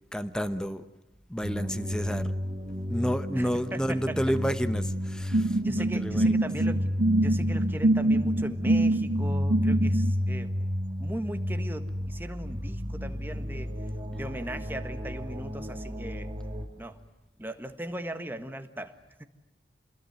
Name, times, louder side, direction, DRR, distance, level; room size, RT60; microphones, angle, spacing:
voice 1, 0.1-0.8 1.3-2.3 2.9-6.5, equal, 5° left, 11 dB, 1.0 m, -30 dB
sound 1, 1.4-16.7, equal, 30° right, 3.2 m, -32 dB
voice 2, 3.3-4.2 5.6-10.6 11.0-13.7 14.1-16.3 16.8-17.0 17.4-18.9 19.2-19.3, right 1 dB, 10° right, 8 dB, 1.5 m, -38 dB
sound 2, 5.3-10.1, right 1 dB, 80° right, 1.1 m, -25 dB
28.0 x 21.5 x 9.5 m, 1.0 s
head